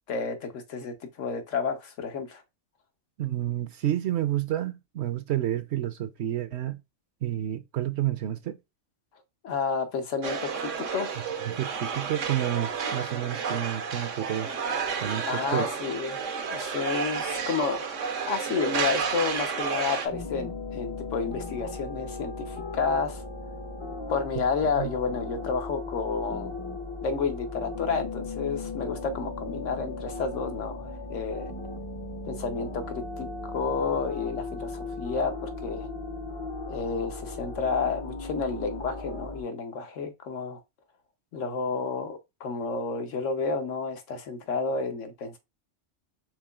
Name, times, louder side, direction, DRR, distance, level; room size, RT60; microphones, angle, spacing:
voice 1, 0.1-2.4 9.4-11.1 15.3-17.9 18.3-23.2 24.1-26.5 27.0-31.5 32.3-35.9 36.6-40.6 41.3-45.4, left 5 dB, 80° left, 1.3 m, -30 dB
voice 2, 3.2-6.8 7.2-8.6 11.5-14.5 15.0-15.7 24.8-24.9, right 12 dB, 70° right, 0.8 m, -30 dB
sound 1, 10.2-20.1, right 6 dB, 85° right, 1.2 m, -31 dB
sound 2, 20.1-39.4, left 3 dB, 35° left, 0.5 m, -37 dB
4.8 x 3.8 x 2.3 m
omnidirectional pair, 1.3 m